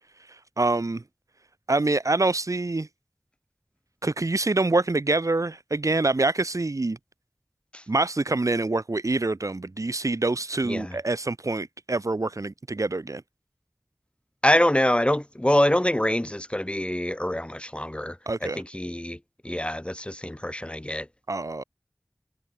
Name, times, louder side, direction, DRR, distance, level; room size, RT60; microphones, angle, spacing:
voice 1, 0.3-1.0 1.7-2.9 4.0-7.0 7.9-13.2 18.2-18.6 21.3-21.6, right 2 dB, 85° right, 1.9 m, -25 dB
voice 2, 10.6-11.0 14.4-18.2 18.4-19.2 19.4-21.1, left 1 dB, 20° left, 1.4 m, -25 dB
wide cardioid pair, 40°, 5 cm